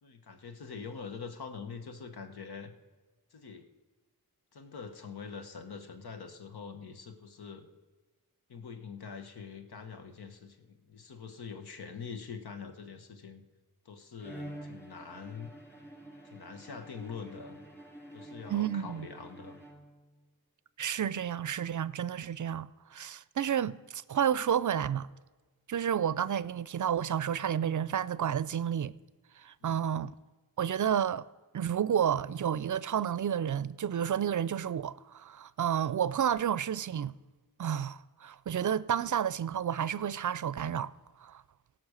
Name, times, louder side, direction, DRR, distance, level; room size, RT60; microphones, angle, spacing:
voice 1, 0.0-2.7 3.3-3.7 4.5-7.7 8.5-13.4 13.8-15.5 16.2-17.6 18.1-19.6 29.6-29.9, left 5 dB, 90° left, 1.1 m, -44 dB
Bowed string instrument, 14.2-20.2, right 1 dB, 5° left, 2.9 m, -48 dB
voice 2, 18.5-19.1 20.8-25.1 25.7-28.9 29.4-30.1 30.6-31.3 31.5-37.1 37.6-40.9 41.2-41.4, right 9 dB, 55° right, 0.5 m, -31 dB
17.0 x 6.1 x 6.4 m
cardioid pair, 55°, 37 cm